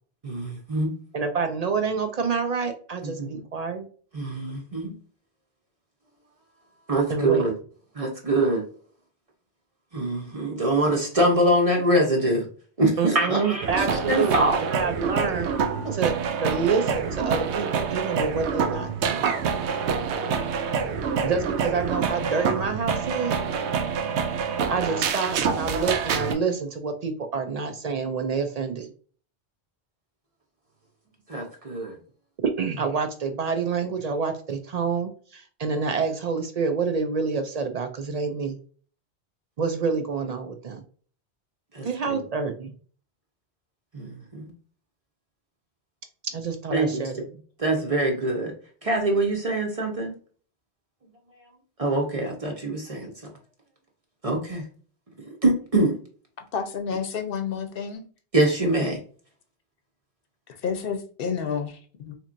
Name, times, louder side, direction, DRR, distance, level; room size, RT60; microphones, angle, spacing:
voice 1, 0.2-0.9 3.0-3.3 4.1-4.9 6.9-7.5 8.0-8.6 9.9-12.4 12.8-14.6 15.8-15.9 24.1-24.2 31.3-32.0 41.7-42.2 43.9-44.5 46.7-47.2 47.6-48.5 48.8-50.1 51.8-53.1 54.2-54.6 55.3-56.0 58.3-59.0, right 1 dB, 35° right, 1 dB, 0.8 m, -24 dB
voice 2, 1.1-3.9 7.1-7.5 13.0-15.5 15.9-16.1 16.4-19.3 21.2-23.3 24.7-28.9 32.6-38.6 39.6-40.8 41.8-42.7 46.3-47.2, right 5 dB, 60° right, 7 dB, 0.4 m, -27 dB
sound 1, 13.6-26.3, right 6 dB, 85° right, 0.9 m, -27 dB
voice 3, 56.5-58.0 60.6-62.2, left 6 dB, 60° left, 6 dB, 0.8 m, -30 dB
4.2 x 3.0 x 2.5 m, 0.43 s
omnidirectional pair, 1.1 m